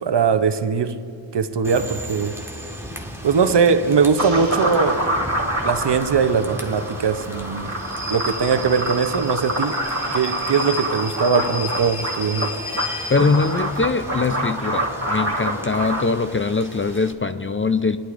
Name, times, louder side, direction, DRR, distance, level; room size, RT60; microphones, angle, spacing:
voice 1, 0.0-1.0 1.3-2.3 3.2-5.0 5.6-7.7 8.1-9.8 10.1-12.5, right 5 dB, 60° right, 10 dB, 0.7 m, -20 dB
Rain / Train, 1.6-17.1, equal, 5° right, 1.5 m, -34 dB
sound 1, 4.2-16.0, right 1 dB, 35° right, 2.5 m, -26 dB
voice 2, 13.1-18.0, left 4 dB, 30° left, 10 dB, 0.4 m, -22 dB
19.5 x 11.0 x 2.5 m, 2.4 s
cardioid pair, 45°, 47 cm